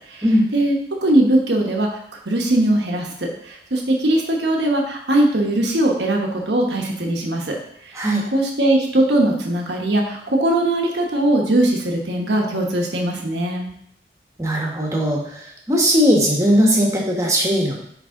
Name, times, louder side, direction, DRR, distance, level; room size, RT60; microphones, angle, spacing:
voice 1, 0.5-1.9 2.3-7.6 8.3-13.7, right 1 dB, 75° right, 0 dB, 1.0 m, -20 dB
voice 2, 14.4-15.2 15.7-17.8, equal, 15° right, -1 dB, 1.2 m, -18 dB
10.0 x 3.4 x 3.7 m, 0.71 s
head